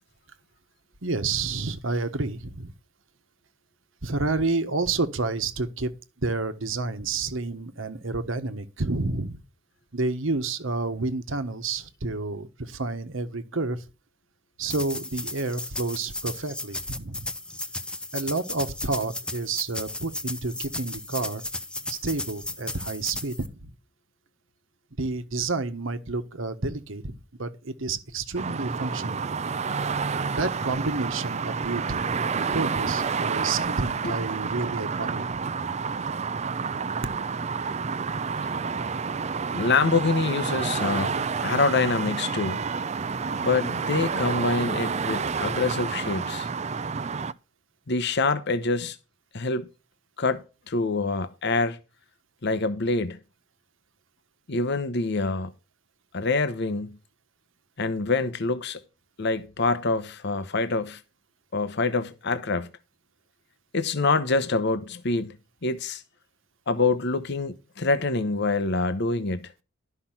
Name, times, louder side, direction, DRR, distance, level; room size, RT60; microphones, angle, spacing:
voice 1, 1.0-2.7 4.0-5.9 6.2-9.4 9.9-13.8 14.6-17.3 18.1-21.4 21.9-23.6 25.0-27.1 27.4-29.2 30.3-35.2, right 3 dB, 70° right, 1.3 m, -29 dB
sound 1, 14.7-23.5, left 2 dB, 5° left, 0.8 m, -35 dB
sound 2, 28.4-47.3, right 5 dB, 35° right, 0.5 m, -29 dB
voice 2, 39.5-42.6 43.4-46.5 47.9-49.0 49.3-49.7 50.2-51.8 52.4-53.2 54.5-55.5 56.1-56.9 57.8-58.8 59.2-61.0 61.5-62.7 63.7-65.4 65.6-66.0 66.7-69.5, left 3 dB, 55° left, 1.0 m, -26 dB
12.5 x 5.8 x 5.8 m
head